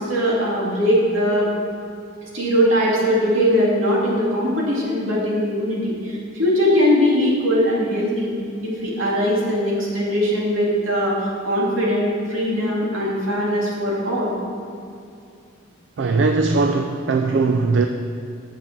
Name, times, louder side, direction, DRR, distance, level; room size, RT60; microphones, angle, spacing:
voice 1, 0.0-1.5 2.3-8.3 8.6-14.4, equal, 75° right, -5 dB, 2.3 m, -20 dB
voice 2, 16.0-17.9, right 3 dB, 55° right, 5 dB, 0.4 m, -19 dB
7.5 x 6.3 x 6.0 m, 2.5 s
head